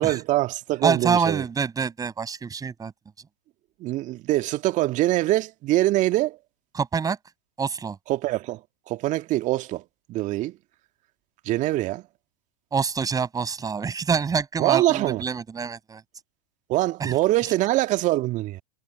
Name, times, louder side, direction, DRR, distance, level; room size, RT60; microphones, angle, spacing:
voice 1, 0.0-1.5 3.8-6.4 8.1-8.6 8.9-9.8 10.1-10.5 11.5-12.0 14.6-15.2 16.7-18.6, right 16 dB, 40° right, 2.0 m, -24 dB
voice 2, 0.8-2.9 6.7-7.2 7.6-8.0 12.7-16.0 17.0-17.1, right 5 dB, 20° right, 7.9 m, -26 dB
hypercardioid pair, 100°, 20 cm